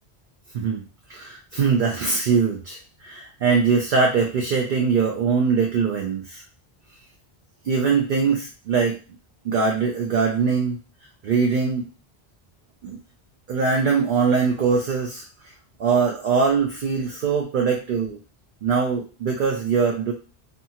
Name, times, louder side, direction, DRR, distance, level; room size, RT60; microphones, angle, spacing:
voice 1, 1.1-6.4 7.6-9.0 9.4-10.8 11.2-11.9 12.8-13.0 13.5-15.2 15.8-18.2 18.6-20.1, right 5 dB, 60° right, 0 dB, 0.6 m, -22 dB
2.7 x 2.3 x 2.8 m, 0.33 s
omnidirectional pair, 1.0 m